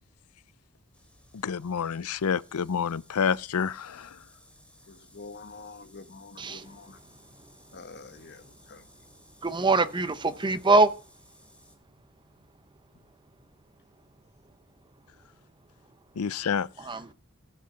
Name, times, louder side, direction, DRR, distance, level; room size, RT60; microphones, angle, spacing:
sound 1, 0.9-11.8, left 1 dB, 5° left, 2.6 m, -58 dB
voice 1, 1.3-4.2 16.2-16.7, left 6 dB, 75° left, 0.5 m, -28 dB
voice 2, 4.9-7.0 7.7-8.8, left 3 dB, 50° left, 1.2 m, -46 dB
voice 3, 6.4-6.8 9.4-11.0 16.8-17.1, right 3 dB, 20° right, 0.8 m, -24 dB
16.0 x 7.9 x 5.6 m
head